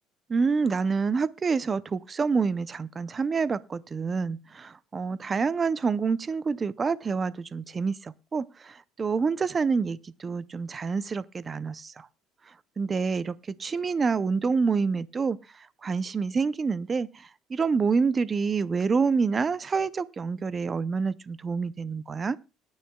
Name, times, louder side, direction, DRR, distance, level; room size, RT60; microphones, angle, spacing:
voice 1, 0.3-12.1 12.8-15.4 15.8-22.4, right 5 dB, 20° right, 0.5 m, -27 dB
21.5 x 9.5 x 2.2 m
cardioid pair, 160°, 0 cm